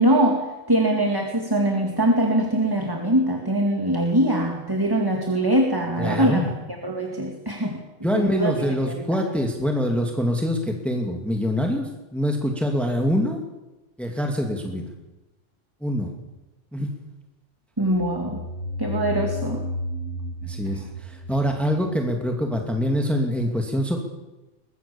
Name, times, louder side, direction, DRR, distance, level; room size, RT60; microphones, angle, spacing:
voice 1, 0.0-7.8 8.1-9.2 17.8-18.5 18.8-19.6 20.6-20.9, right 1 dB, 15° right, 2 dB, 2.4 m, -23 dB
voice 2, 6.0-6.5 8.0-13.4 14.0-14.9 15.8-16.1 16.7-16.9 20.4-24.0, equal, ahead, 3 dB, 2.4 m, -25 dB
sound 1, 17.9-22.5, left 1 dB, 75° left, 2.3 m, -32 dB
22.5 x 22.0 x 7.2 m, 1.0 s
omnidirectional pair, 1.3 m